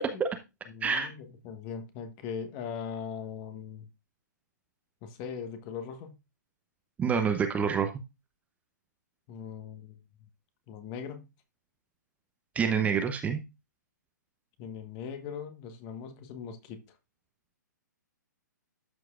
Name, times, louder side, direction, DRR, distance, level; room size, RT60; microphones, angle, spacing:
voice 1, 0.7-3.9 5.0-6.1 9.3-10.0 10.7-11.3 14.6-16.8, left 7 dB, 35° left, 1.3 m, -40 dB
voice 2, 7.0-7.9 12.5-13.4, right 6 dB, 15° right, 0.7 m, -27 dB
12.5 x 4.6 x 2.4 m
hypercardioid pair, 130°, 10 cm